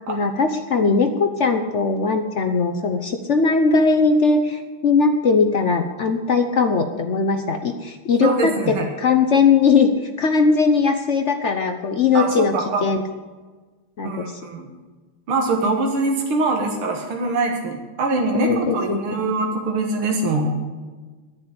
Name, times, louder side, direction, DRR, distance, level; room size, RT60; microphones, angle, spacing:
voice 1, 0.1-12.5 12.8-13.0 14.0-14.3 18.4-19.1, left 4 dB, 70° left, 6 dB, 0.6 m, -19 dB
voice 2, 8.2-8.9 12.1-12.9 14.0-14.7 15.3-20.5, right 3 dB, 75° right, 1 dB, 2.4 m, -23 dB
10.5 x 9.4 x 8.7 m, 1.3 s
omnidirectional pair, 2.4 m